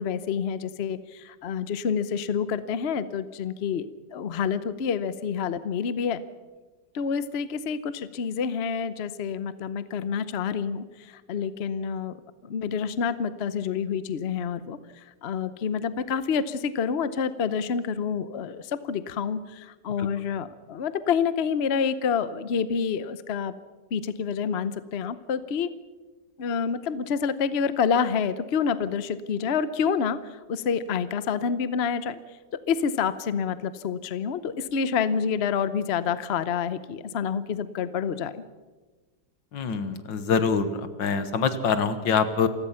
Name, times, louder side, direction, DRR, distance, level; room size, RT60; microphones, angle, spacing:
voice 1, 0.0-6.2 6.9-12.2 12.4-23.5 23.9-25.7 26.4-32.2 32.5-38.4, left 6 dB, 50° left, 14 dB, 0.8 m, -28 dB
voice 2, 39.5-42.5, left 5 dB, 80° left, 11 dB, 2.0 m, -25 dB
28.5 x 16.5 x 5.7 m, 1.3 s
omnidirectional pair, 2.0 m